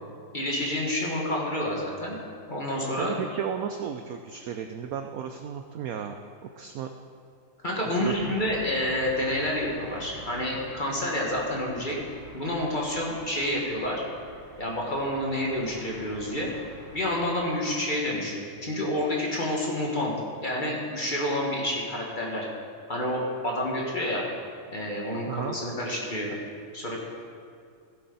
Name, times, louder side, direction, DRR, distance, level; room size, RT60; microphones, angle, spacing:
voice 1, 0.3-2.2 2.5-3.2 7.6-12.0 12.3-14.0 14.6-16.5 16.9-20.1 20.4-22.5 22.9-24.3 24.7-26.4 26.7-27.0, left 1 dB, 25° left, -3 dB, 1.7 m, -29 dB
voice 2, 2.9-6.1 6.6-6.9 8.0-8.4 25.3-25.6, right 7 dB, 75° right, 6 dB, 0.8 m, -34 dB
sound 1, 8.0-17.4, right 1 dB, 35° right, 1.7 m, -46 dB
16.0 x 7.7 x 4.0 m, 2.3 s
omnidirectional pair, 2.0 m